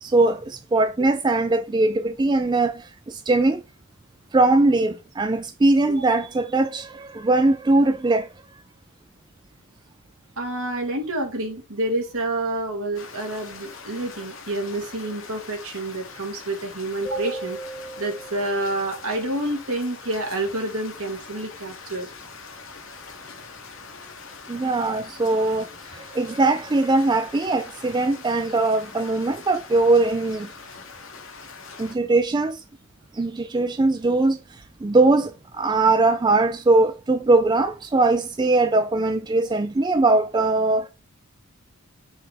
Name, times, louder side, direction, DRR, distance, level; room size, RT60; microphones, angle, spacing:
voice 1, 0.0-3.6 4.3-8.3 24.5-25.7 25.9-30.5 31.8-32.6 33.1-34.4 34.8-40.9, right 2 dB, 20° right, 0.3 m, -21 dB
voice 2, 10.4-17.6 18.0-22.1, right 1 dB, 70° right, 1.9 m, -28 dB
sound 1, 12.9-31.9, left 4 dB, 60° left, 1.1 m, -42 dB
sound 2, 17.0-19.3, right 2 dB, 15° left, 1.1 m, -37 dB
5.5 x 3.4 x 5.0 m
head